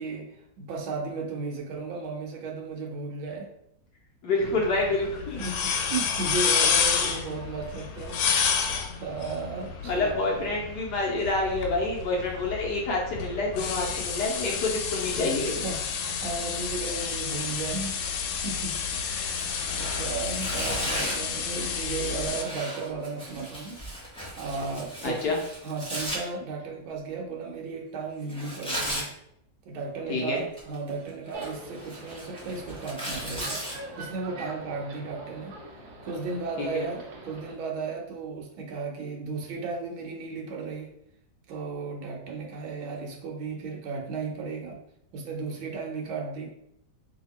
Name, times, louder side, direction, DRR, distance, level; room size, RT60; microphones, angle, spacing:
voice 1, 0.0-3.5 4.4-4.9 5.4-10.2 12.1-12.3 15.6-23.8 24.4-25.3 25.6-29.1 29.6-33.6 34.0-35.6 36.0-40.9 41.5-44.8 45.1-46.5, right 4 dB, 80° right, 1 dB, 1.6 m, -35 dB
voice 2, 4.2-5.4 7.0-7.2 9.8-15.7 25.0-25.4 30.1-30.4 36.6-36.9, left 2 dB, 65° left, -1 dB, 1.1 m, -28 dB
sound 1, 4.4-22.4, left 6 dB, 90° left, 1.4 m, -30 dB
Tearing, 19.3-21.3 22.1-26.2 28.3-29.1 30.4-30.9 31.3-33.7, equal, 10° left, 0.3 m, -36 dB
sound 2, 31.3-37.5, right 1 dB, 60° right, 1.2 m, -44 dB
3.3 x 2.8 x 4.2 m, 0.77 s
omnidirectional pair, 2.1 m